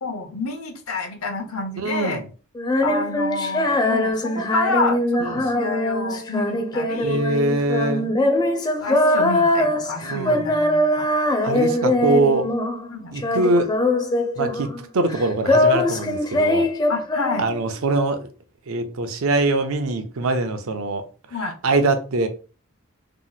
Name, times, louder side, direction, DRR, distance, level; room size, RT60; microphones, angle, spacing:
voice 1, 0.0-2.2 2.8-7.3 8.8-11.1 12.9-13.1 16.9-17.5 21.3-21.5, left 3 dB, 80° left, 0.8 m, -28 dB
voice 2, 1.8-2.2 5.2-5.5 7.0-8.1 10.0-10.5 11.4-12.5 13.1-13.7 14.4-16.7 17.4-18.3 18.7-21.1 21.6-22.3, right 2 dB, 75° right, 0.6 m, -23 dB
Female singing, 2.6-12.9 13.2-14.8 15.1-17.8, left 1 dB, 20° left, 0.4 m, -22 dB
2.9 x 2.1 x 3.9 m
head